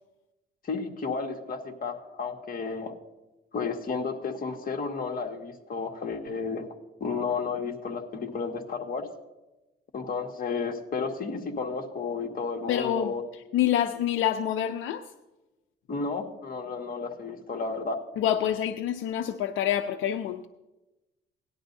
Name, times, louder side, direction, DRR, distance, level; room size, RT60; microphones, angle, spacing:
voice 1, 0.6-2.9 3.5-6.7 7.0-9.1 9.9-13.2 15.9-18.0, left 4 dB, 45° left, 3 dB, 1.7 m, -32 dB
voice 2, 12.7-15.0 18.2-20.5, left 10 dB, 80° left, 9 dB, 0.5 m, -27 dB
18.0 x 11.0 x 2.6 m, 1.0 s
cardioid pair, 90°, 20 cm